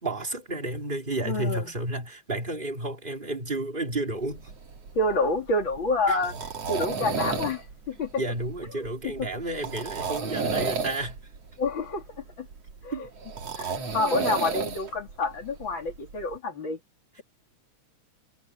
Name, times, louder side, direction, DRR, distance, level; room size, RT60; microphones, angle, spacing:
voice 1, 0.0-4.5 6.1-6.2 8.2-11.2 12.9-13.0, right 2 dB, 15° right, 3.4 m, -31 dB
voice 2, 1.2-1.7 4.9-6.3 6.7-8.2 9.0-9.3 10.1-10.3 11.6-12.0 12.4-12.5 12.8-12.9 13.6-16.8, left 2 dB, 40° left, 3.2 m, -28 dB
sound 1, 4.2-16.4, right 5 dB, 50° right, 3.8 m, -33 dB
omnidirectional pair, 3.7 m